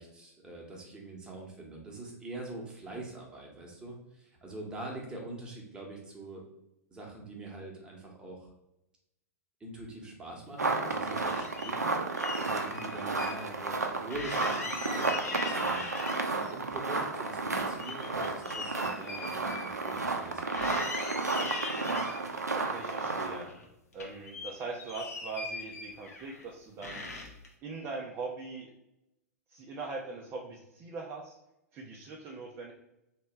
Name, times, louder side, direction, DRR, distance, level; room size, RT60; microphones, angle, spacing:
voice 1, 0.0-6.4 6.9-8.5 9.6-11.9 12.4-15.8 16.3-20.7, right 2 dB, 10° right, -2 dB, 1.1 m, -44 dB
sound 1, 10.6-23.5, right 3 dB, 80° right, 0.6 m, -32 dB
sound 2, 10.7-11.7 12.2-13.4 13.7-13.8 14.1-16.5 16.9-20.3 20.5-22.2 22.8-23.7 23.9-26.4 26.8-27.5, left 3 dB, 70° left, 0.8 m, -41 dB
voice 2, 22.5-23.5 23.9-27.1 27.6-28.7 29.5-31.3 31.7-32.7, right 4 dB, 30° right, -1 dB, 0.6 m, -41 dB
3.2 x 2.9 x 4.4 m, 0.89 s
figure-of-eight pair, 100°, 9 cm